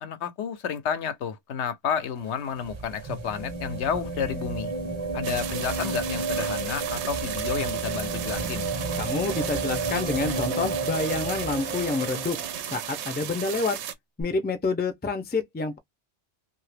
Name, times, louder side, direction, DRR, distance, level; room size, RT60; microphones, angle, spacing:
voice 1, 0.0-4.7 5.1-8.7, left 7 dB, 85° left, 0.9 m, -31 dB
sound 1, 2.0-13.0 14.2-14.3, right 3 dB, 30° right, 0.6 m, -32 dB
sound 2, 5.2-13.9, right 10 dB, 90° right, 0.9 m, -35 dB
voice 2, 9.0-12.4 12.7-13.8 14.2-15.8, left 3 dB, 15° left, 0.3 m, -28 dB
2.8 x 2.4 x 3.3 m
omnidirectional pair, 1.1 m